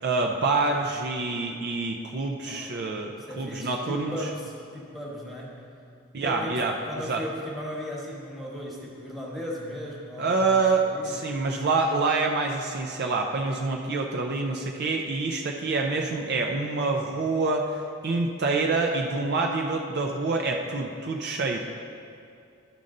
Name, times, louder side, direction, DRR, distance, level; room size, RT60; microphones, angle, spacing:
voice 1, 0.0-4.3 6.1-6.7 7.1-7.2 10.2-21.6, right 3 dB, 50° right, 2 dB, 0.5 m, -26 dB
voice 2, 2.5-5.6 6.2-11.2, equal, ahead, -4 dB, 1.3 m, -37 dB
12.0 x 5.3 x 3.8 m, 2.4 s
head